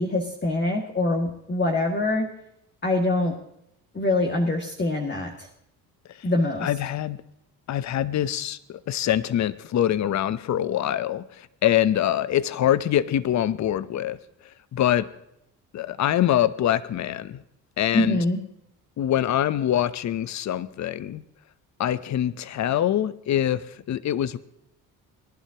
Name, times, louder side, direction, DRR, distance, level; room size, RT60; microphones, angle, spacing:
voice 1, 0.0-2.3 2.8-3.3 3.9-5.5 6.2-6.7 17.9-18.4, left 2 dB, 25° left, 1 dB, 2.0 m, -24 dB
voice 2, 6.6-7.2 7.7-14.2 14.7-15.1 15.7-17.4 17.8-18.2 19.0-21.2 21.8-24.4, left 11 dB, 45° left, 16 dB, 0.8 m, -24 dB
22.0 x 11.0 x 2.9 m, 0.80 s
supercardioid pair, 75°, 40 cm